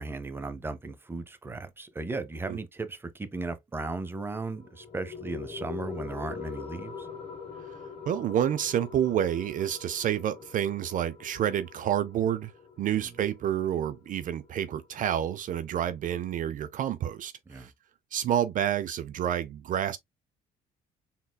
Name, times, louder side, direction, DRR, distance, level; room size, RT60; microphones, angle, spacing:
voice 1, 0.0-7.1 17.5-17.7, right 3 dB, 15° right, 0.7 m, -36 dB
sound 1, 4.3-15.3, left 6 dB, 35° left, 2.0 m, -44 dB
voice 2, 8.1-12.5 12.8-17.7 18.1-20.0, right 10 dB, 50° right, 0.5 m, -29 dB
4.1 x 3.7 x 2.2 m
cardioid pair, 110°, 17 cm